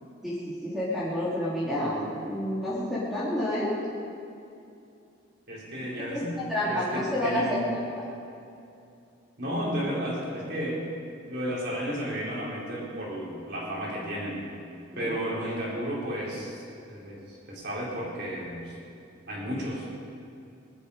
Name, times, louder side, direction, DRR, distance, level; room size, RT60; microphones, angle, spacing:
voice 1, 0.6-2.0 2.2-3.7 6.1-6.2 6.5-8.0 14.9-15.2, left 1 dB, ahead, -9 dB, 2.7 m, -29 dB
voice 2, 5.5-6.3 6.6-7.7 9.4-10.8 11.3-14.4 15.0-16.6 16.9-18.7 19.3-19.8, equal, 50° right, -6 dB, 4.9 m, -33 dB
20.5 x 12.5 x 5.2 m, 2.7 s
head